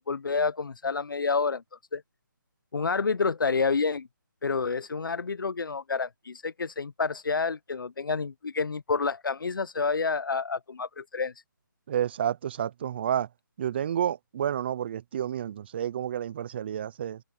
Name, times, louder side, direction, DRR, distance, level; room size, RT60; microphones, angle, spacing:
voice 1, 0.1-1.6 1.9-2.0 2.7-4.1 4.4-11.3, left 4 dB, 75° left, 1.0 m, -29 dB
voice 2, 11.9-13.3 13.6-17.2, right 10 dB, 30° right, 0.7 m, -30 dB
hypercardioid pair, 160°, 11 cm